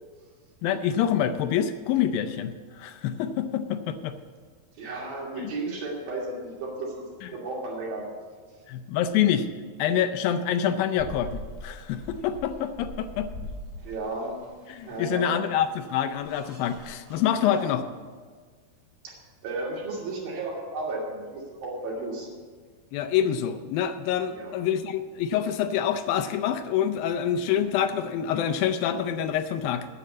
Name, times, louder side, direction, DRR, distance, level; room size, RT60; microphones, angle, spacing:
voice 1, 0.6-4.2 5.4-5.5 7.2-7.3 8.7-9.5 9.8-13.3 14.7-17.8 22.9-29.9, left 9 dB, 80° left, 9 dB, 2.3 m, -26 dB
voice 2, 4.8-7.1 7.3-8.0 13.8-14.4 14.9-15.5 17.4-17.6 19.0-19.1 19.4-22.3 24.3-24.5, right 2 dB, 70° right, -3 dB, 4.4 m, -34 dB
sound 1, 11.0-17.7, left 1 dB, 35° right, 3.0 m, -42 dB
10.0 x 7.7 x 8.4 m, 1.6 s
omnidirectional pair, 4.3 m